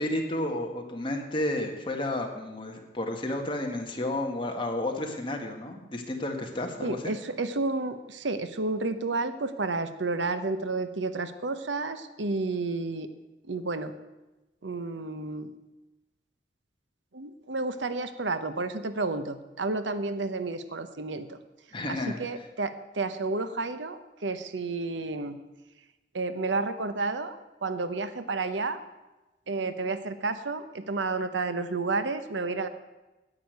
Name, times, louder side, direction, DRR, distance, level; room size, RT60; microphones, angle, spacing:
voice 1, 0.0-7.1 21.7-22.2, left 1 dB, 30° left, 2 dB, 1.7 m, -31 dB
voice 2, 6.8-13.1 13.4-13.9 14.6-15.5 17.1-21.4 21.9-25.4 26.1-27.4 27.6-28.8 29.5-32.7, right 3 dB, 85° right, 11 dB, 0.9 m, -31 dB
9.9 x 8.5 x 9.4 m, 1.1 s
head